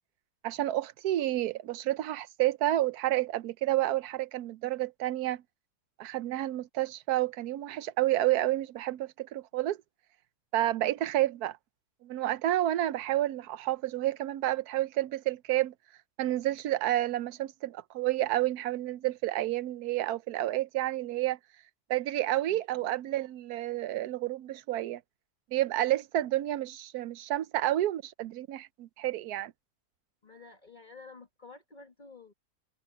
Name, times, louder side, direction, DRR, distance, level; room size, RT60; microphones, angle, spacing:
voice 1, 0.4-5.4 6.0-9.8 10.5-11.6 12.0-15.7 16.2-21.4 21.9-25.0 25.5-29.5, right 14 dB, 85° right, 1.2 m, -30 dB
voice 2, 22.5-22.9 30.2-32.3, left 4 dB, 30° left, 1.7 m, -51 dB
omnidirectional pair, 1.6 m